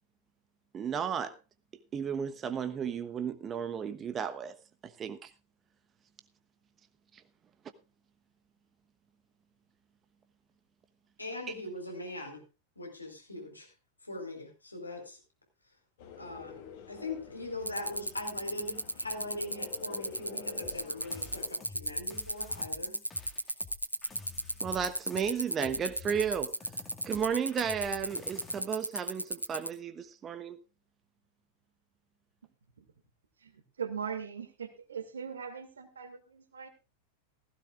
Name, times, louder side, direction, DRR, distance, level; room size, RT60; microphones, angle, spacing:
voice 1, 0.7-1.3 1.9-4.5 4.8-5.3 24.6-26.6 27.1-30.6, right 7 dB, 25° right, 1.1 m, -33 dB
voice 2, 11.2-12.4 12.8-13.7 14.0-15.2 16.2-16.6 16.9-23.0, left 2 dB, 85° left, 4.4 m, -41 dB
sound 1, 16.0-21.5, left 7 dB, 50° left, 2.9 m, -49 dB
sound 2, 17.7-29.7, right 1 dB, 90° right, 0.9 m, -33 dB
sound 3, 20.6-28.6, left 3 dB, 20° left, 2.1 m, -50 dB
voice 3, 33.4-36.7, right 7 dB, 70° right, 2.1 m, -40 dB
16.0 x 15.5 x 2.5 m
figure-of-eight pair, 90°, 0 cm